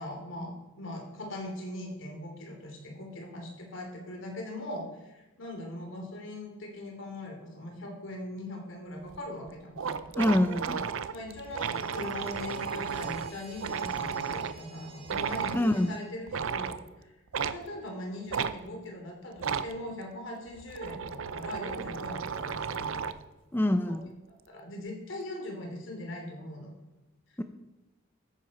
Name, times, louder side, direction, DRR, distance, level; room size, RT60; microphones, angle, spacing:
voice 1, 0.0-10.1 11.1-17.1 17.4-22.9 23.9-24.0 24.5-26.7, left 1 dB, 70° left, 1 dB, 3.2 m, -40 dB
sound 1, 9.1-9.2 9.5-9.6 9.8-14.6 15.0-15.6 16.3-16.8 17.3-17.6 18.3-18.5 19.4-19.7 20.5-23.2, right 6 dB, 80° right, 0.6 m, -34 dB
voice 2, 10.2-10.8 15.5-15.9 23.5-24.0 27.4-27.5, left 1 dB, 10° left, 8 dB, 0.5 m, -25 dB
sound 2, 11.4-16.1, right 4 dB, 25° right, 1.9 m, -53 dB
13.5 x 9.7 x 4.3 m, 1.1 s
head